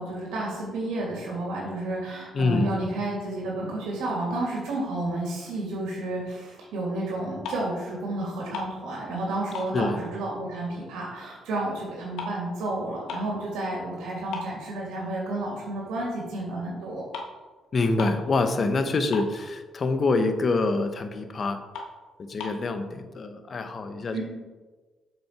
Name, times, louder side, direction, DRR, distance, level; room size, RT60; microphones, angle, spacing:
voice 1, 0.0-17.0 24.1-24.2, right 2 dB, 90° right, -4 dB, 2.5 m, -31 dB
voice 2, 2.3-2.7 9.7-10.0 17.7-21.6 22.2-24.2, left 3 dB, 45° left, 8 dB, 0.9 m, -26 dB
sound 1, 7.4-7.9 8.2-9.3 9.5-11.1 11.4-13.4 13.8-13.9 14.3-15.4 15.8-16.0 16.8-16.9 17.1-17.4 17.6-17.7 17.9-18.3 18.6-18.7 18.9-19.8 20.2-20.3 20.7-20.8 21.2-21.3 21.7-22.7, left 3 dB, 85° left, 1.6 m, -38 dB
7.3 x 6.3 x 4.6 m, 1.3 s
cardioid pair, 90°, 0 cm